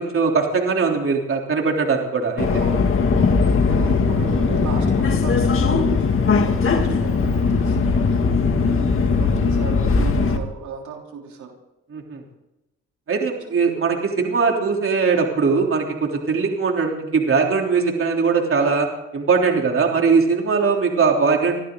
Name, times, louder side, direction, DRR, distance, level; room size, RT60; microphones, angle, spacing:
voice 1, 0.0-2.6 3.8-4.0 11.9-12.2 13.1-18.9 19.1-21.6, right 5 dB, 45° right, 1 dB, 3.4 m, -20 dB
Subway metro underground, 2.4-10.4, left 4 dB, 45° left, 2.2 m, -19 dB
voice 2, 2.5-8.2 8.6-11.5 13.4-13.5, right 5 dB, 75° right, 1 dB, 3.4 m, -35 dB
24.0 x 14.5 x 3.9 m, 0.95 s
cardioid pair, 90°, 30 cm